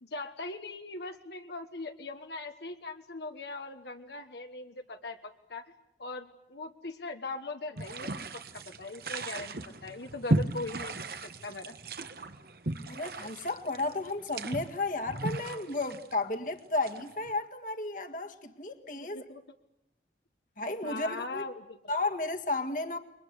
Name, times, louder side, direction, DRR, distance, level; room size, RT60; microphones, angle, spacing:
voice 1, 0.0-5.6 6.0-11.7 19.0-19.4 20.8-21.8, left 3 dB, 75° left, 1.4 m, -40 dB
sound 1, 7.8-17.3, right 2 dB, 55° right, 1.4 m, -36 dB
voice 2, 12.9-19.2 20.6-21.4 21.9-23.0, left 2 dB, 45° left, 1.8 m, -33 dB
29.0 x 23.5 x 8.2 m
head